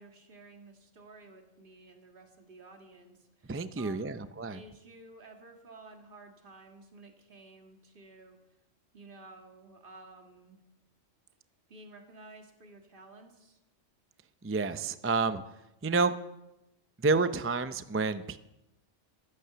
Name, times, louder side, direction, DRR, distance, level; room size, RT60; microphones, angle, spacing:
voice 1, 0.0-8.4 8.9-10.6 11.7-13.6, right 2 dB, 45° right, 3 dB, 2.1 m, -53 dB
voice 2, 3.5-4.6 14.4-15.4 15.8-16.1 17.0-18.4, right 4 dB, 20° right, 11 dB, 0.4 m, -29 dB
15.0 x 13.0 x 6.8 m, 0.92 s
omnidirectional pair, 1.3 m